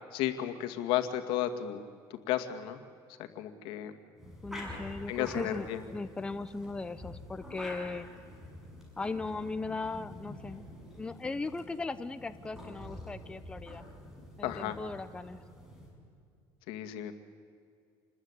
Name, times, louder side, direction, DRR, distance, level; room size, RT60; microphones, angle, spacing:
voice 1, 0.1-2.8 3.4-3.9 5.1-5.8 14.4-14.8 16.7-17.1, left 11 dB, 85° left, 7 dB, 2.2 m, -33 dB
sound 1, 4.2-15.9, left 1 dB, 5° right, 6.6 m, -47 dB
voice 2, 4.4-8.1 9.0-10.6 11.0-13.8 14.4-15.4, left 3 dB, 10° left, 11 dB, 0.8 m, -38 dB
28.0 x 20.5 x 9.9 m, 2.3 s
cardioid pair, 145°, 8 cm